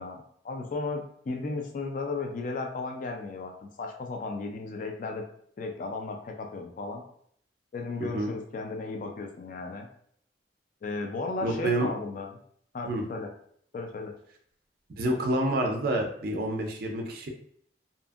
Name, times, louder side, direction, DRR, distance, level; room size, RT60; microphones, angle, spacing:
voice 1, 0.0-5.2 5.6-7.0 7.7-9.9 10.8-12.3 12.7-13.3 13.7-14.1, left 3 dB, 45° left, 2 dB, 0.3 m, -35 dB
voice 2, 8.0-8.3 11.4-11.9 12.8-13.0 15.0-17.3, right 1 dB, 55° right, 2 dB, 0.4 m, -28 dB
2.7 x 2.5 x 2.3 m, 0.64 s
head